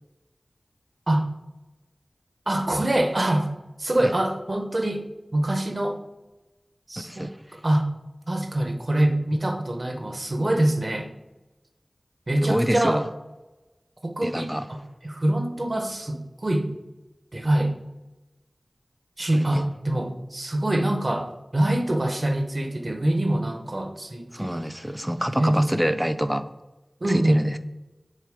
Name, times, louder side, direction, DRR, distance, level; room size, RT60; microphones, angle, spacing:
voice 1, 2.5-3.5 3.8-6.0 6.9-7.3 7.6-7.9 8.3-11.1 12.3-13.0 14.0-16.7 17.3-17.7 19.2-24.6 25.4-25.7 27.0-27.5, right 1 dB, 50° right, 5 dB, 0.8 m, -25 dB
voice 2, 7.0-7.4 12.4-13.0 14.2-14.6 19.3-19.6 24.3-26.5 27.1-27.6, equal, 10° right, 11 dB, 0.4 m, -26 dB
6.6 x 3.7 x 5.0 m, 1.1 s
wide cardioid pair, 65°, 0 cm